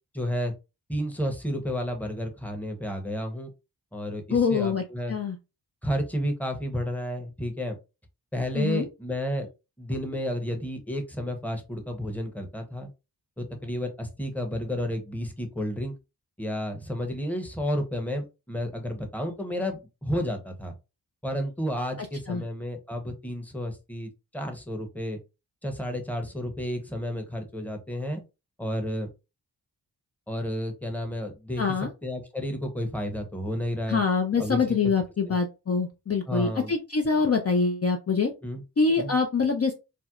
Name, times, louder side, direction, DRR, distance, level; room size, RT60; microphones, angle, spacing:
voice 1, 0.1-0.5 0.9-3.5 3.9-5.1 5.8-7.8 8.3-9.5 9.8-12.9 13.4-15.9 16.4-20.7 21.2-25.2 25.6-28.2 28.6-29.1 30.3-34.0 34.4-34.6 35.3-35.4 36.3-36.7 38.4-38.6 39.0-39.1, equal, 5° left, 4 dB, 0.8 m, -31 dB
voice 2, 4.3-4.8 5.1-5.4 8.5-8.9 22.3-22.4 31.6-31.9 33.9-38.3 38.8-39.7, left 4 dB, 35° left, 3 dB, 0.5 m, -24 dB
4.3 x 2.1 x 2.4 m, 0.27 s
cardioid pair, 55°, 41 cm